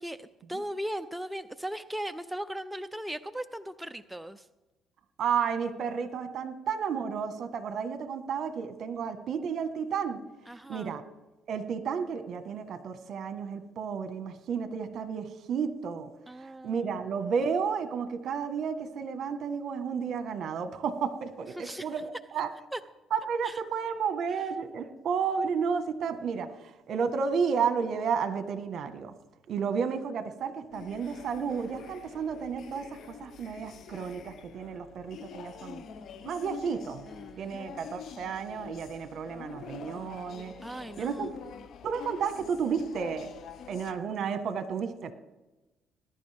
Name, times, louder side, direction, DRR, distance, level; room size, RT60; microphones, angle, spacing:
voice 1, 0.0-4.5 10.5-11.0 16.3-16.9 21.5-22.0 22.7-22.8 23.4-23.6 24.4-24.5 37.1-37.9 40.6-41.3, right 1 dB, 5° right, 10 dB, 0.5 m, -38 dB
voice 2, 5.2-10.2 10.7-11.0 11.5-16.1 16.4-22.5 23.1-29.1 29.5-35.8 36.2-37.0 37.4-40.5 41.0-41.3 41.8-43.3 43.7-45.1, right 6 dB, 60° right, 9 dB, 1.3 m, -32 dB
sound 1, 30.7-43.9, left 7 dB, 60° left, 0.9 m, -46 dB
19.5 x 11.0 x 3.5 m, 1.1 s
cardioid pair, 95°, 0 cm